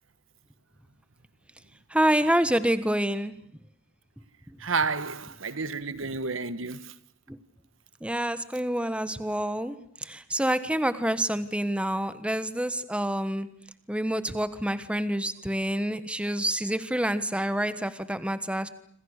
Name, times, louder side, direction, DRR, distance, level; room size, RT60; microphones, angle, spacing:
voice 1, 1.9-3.3 7.3-7.4 8.0-13.5 13.9-18.7, right 1 dB, 5° right, 1.3 m, -27 dB
voice 2, 4.6-6.9, right 4 dB, 70° right, 1.4 m, -30 dB
27.0 x 26.5 x 6.6 m
head